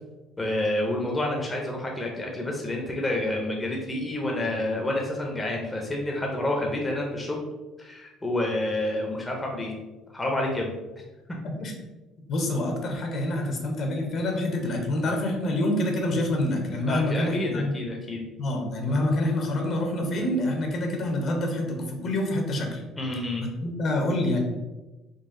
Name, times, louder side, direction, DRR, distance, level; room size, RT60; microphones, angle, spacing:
voice 1, 0.4-7.5 7.8-9.7 10.1-10.7 13.4-13.5 16.9-18.2 23.0-23.5, left 1 dB, 15° left, -1 dB, 0.6 m, -29 dB
voice 2, 12.3-17.7 18.4-22.8 23.6-24.4, left 1 dB, 50° left, 2 dB, 0.8 m, -26 dB
3.9 x 2.2 x 3.7 m, 1.1 s
cardioid pair, 125°, 0 cm